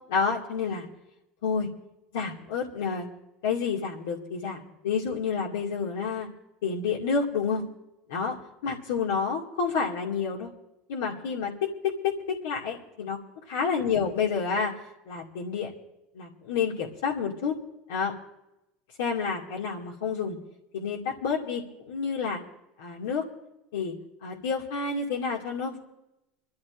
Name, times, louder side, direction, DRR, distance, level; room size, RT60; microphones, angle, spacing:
voice 1, 0.1-0.9 1.4-1.7 2.1-3.1 3.4-6.3 6.6-7.6 8.1-8.4 8.6-10.5 10.9-13.2 13.5-14.7 15.1-15.7 16.1-17.5 17.9-18.1 19.0-20.4 20.7-22.4 22.8-23.2 23.7-23.9 24.2-25.8, left 5 dB, 85° left, -3 dB, 2.1 m, -29 dB
28.0 x 13.0 x 2.5 m, 0.92 s
supercardioid pair, 95°, 0 cm